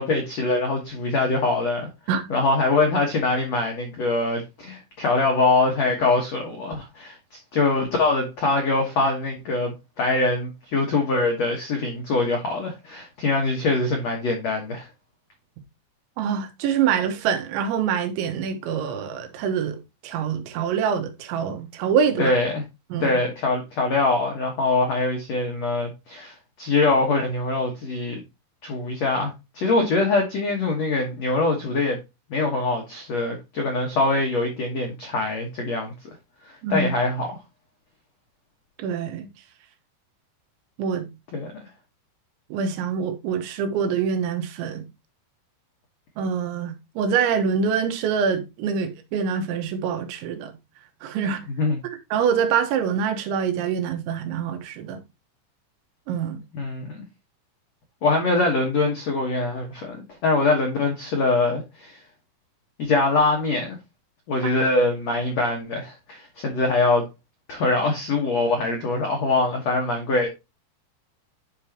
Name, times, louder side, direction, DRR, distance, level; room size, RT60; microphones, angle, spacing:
voice 1, 0.0-1.9 2.3-7.2 7.5-14.9 22.2-22.6 23.0-28.2 28.6-32.0 32.3-35.9 36.4-37.3 41.3-41.5 51.5-51.8 56.5-57.0 58.0-60.0 60.2-62.0 62.8-63.8 64.3-67.0 67.5-70.3, left 3 dB, 75° left, 1.5 m, -23 dB
voice 2, 16.2-19.8 20.0-22.4 22.9-23.1 36.6-36.9 38.8-39.3 40.8-41.1 42.5-44.9 46.2-50.5 51.0-51.5 52.1-55.0 56.1-56.4, right 7 dB, 80° right, 3.5 m, -25 dB
11.5 x 5.0 x 2.9 m
omnidirectional pair, 5.3 m